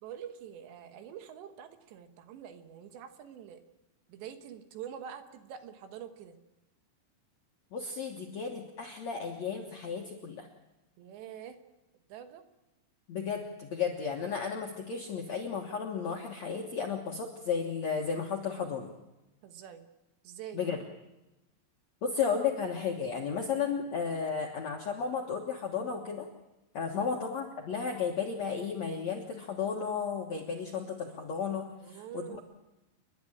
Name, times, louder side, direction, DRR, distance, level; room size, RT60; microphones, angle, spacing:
voice 1, 0.0-3.6 4.1-6.4 11.0-11.6 12.1-12.4 19.4-19.9 20.2-20.7 26.9-27.1 31.8-32.4, right 9 dB, 75° right, 8 dB, 3.4 m, -45 dB
voice 2, 7.7-10.5 13.1-18.9 20.5-20.8 22.0-26.3 26.7-32.4, left 6 dB, 65° left, 1 dB, 1.7 m, -33 dB
29.0 x 11.0 x 10.0 m, 0.99 s
omnidirectional pair, 5.2 m